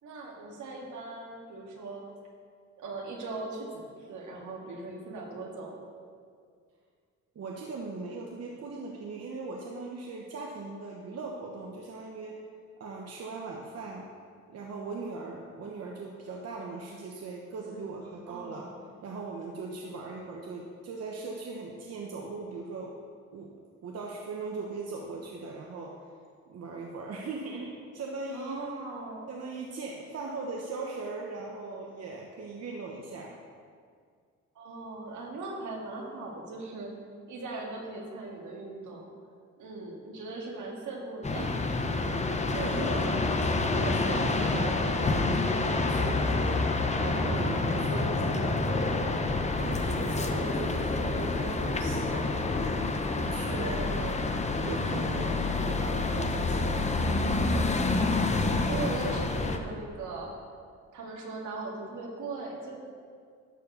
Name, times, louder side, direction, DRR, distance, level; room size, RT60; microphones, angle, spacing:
voice 1, 0.0-2.0 2.8-5.8 17.7-17.9 18.3-18.8 28.3-29.3 34.6-36.9 37.3-39.1 39.6-41.6 57.9-60.3 60.9-62.8, right 3 dB, 75° right, 0 dB, 2.1 m, -39 dB
voice 2, 7.3-12.3 12.8-14.1 14.5-18.7 19.0-23.0 23.3-23.5 23.8-26.0 26.5-28.6 29.3-33.4 42.5-43.1 43.4-46.6 47.0-49.3 49.6-52.8 53.1-54.2 54.6-56.9, right 3 dB, 55° right, -1 dB, 1.1 m, -39 dB
sound 1, 41.2-59.6, left 3 dB, 20° left, 0.9 m, -28 dB
12.5 x 4.6 x 6.8 m, 2.1 s
cardioid pair, 90°, 30 cm